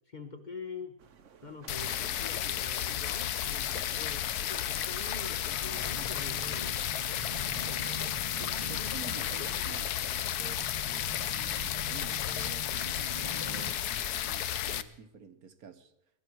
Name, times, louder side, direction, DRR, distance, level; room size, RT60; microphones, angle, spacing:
voice 1, 0.1-1.0 1.4-6.8, left 3 dB, 35° left, 6 dB, 1.2 m, -44 dB
sound 1, 1.0-10.4, right 6 dB, 60° right, 1.2 m, -53 dB
sound 2, 1.7-14.8, left 11 dB, 85° left, 1.3 m, -33 dB
sound 3, 5.7-13.7, equal, 20° right, 1.1 m, -45 dB
voice 2, 8.4-9.9 10.4-12.9 13.2-15.9, right 6 dB, 75° right, 8 dB, 1.6 m, -49 dB
21.0 x 12.5 x 4.7 m, 0.85 s
omnidirectional pair, 1.6 m